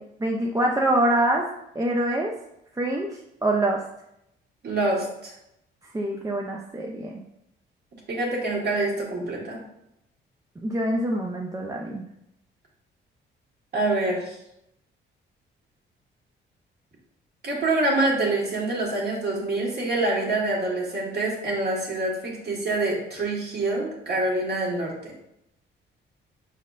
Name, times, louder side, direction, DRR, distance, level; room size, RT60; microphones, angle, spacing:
voice 1, 0.2-1.4 1.8-2.3 2.8-3.1 3.4-3.8 5.9-7.2 10.6-12.0, right 1 dB, 15° right, -1 dB, 0.5 m, -24 dB
voice 2, 4.6-5.3 8.1-9.6 13.7-14.4 17.4-25.1, right 2 dB, 55° right, -3 dB, 1.7 m, -26 dB
5.3 x 4.1 x 2.5 m, 0.82 s
cardioid pair, 90°, 20 cm